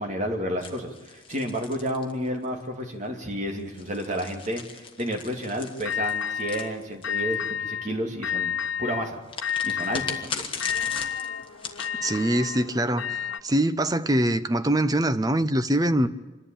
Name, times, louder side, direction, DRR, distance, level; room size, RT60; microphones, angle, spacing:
voice 1, 0.0-9.2 9.6-10.5, equal, 35° right, 2.5 m, -31 dB
sound 1, 0.6-2.6 3.6-7.3 9.3-11.9, left 5 dB, 25° left, 1.5 m, -38 dB
sound 2, 5.8-6.7 7.0-7.9 8.2-9.1 9.4-13.4, left 8 dB, 70° left, 1.0 m, -30 dB
voice 2, 12.0-16.1, right 1 dB, 20° right, 0.6 m, -23 dB
26.5 x 11.0 x 8.8 m
head